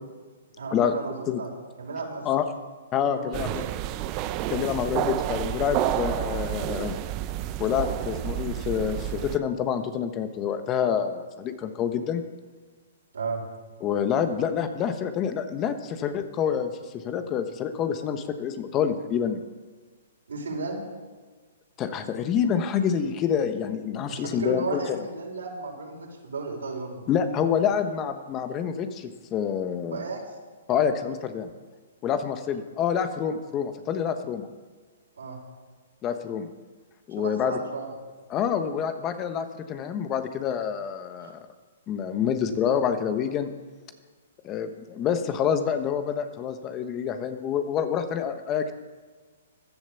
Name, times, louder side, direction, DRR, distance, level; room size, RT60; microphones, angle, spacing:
voice 1, 0.6-1.5 1.8-2.3 3.0-3.6 13.1-13.4 20.3-20.8 24.1-27.0 29.9-30.2 35.2-35.4 37.2-38.0 41.2-41.3, right 4 dB, 85° right, -1 dB, 5.5 m, -34 dB
voice 2, 2.9-3.6 4.5-6.9 7.6-12.2 13.8-19.4 21.8-25.0 27.1-30.0 30.7-31.5 32.0-34.5 36.0-36.5 37.1-37.6 38.3-41.3 41.9-43.5 44.4-48.7, left 8 dB, 25° left, 9 dB, 1.2 m, -27 dB
sound 1, 3.3-9.4, right 13 dB, 30° right, 0.7 m, -30 dB
14.5 x 11.5 x 6.9 m, 1.4 s
hypercardioid pair, 145°, 0 cm